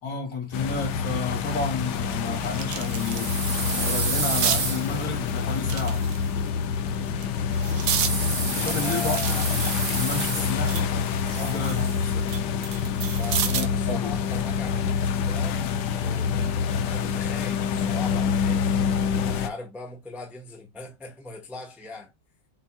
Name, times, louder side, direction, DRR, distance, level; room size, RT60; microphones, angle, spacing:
voice 1, 0.0-3.4 3.7-6.1 8.5-9.4 9.9-10.9 11.4-12.3 13.5-14.1, left 3 dB, 90° left, 2.7 m, -31 dB
sound 1, 0.5-19.5, left 6 dB, 70° left, 1.1 m, -26 dB
sound 2, 1.3-1.4 1.9-3.4 3.7-4.6 5.6-6.5 7.1-8.2 8.7-10.9 11.3-13.8 15.2-15.4, right 8 dB, 80° right, 1.5 m, -31 dB
sound 3, 2.9-6.0 8.0-10.8 11.1-12.1, right 5 dB, 45° right, 0.8 m, -31 dB
voice 2, 7.1-7.5 8.6-9.5 10.2-10.6 11.3-11.9 13.0-16.5 16.8-22.1, left 4 dB, ahead, 0.6 m, -40 dB
6.9 x 2.9 x 2.3 m
omnidirectional pair, 2.0 m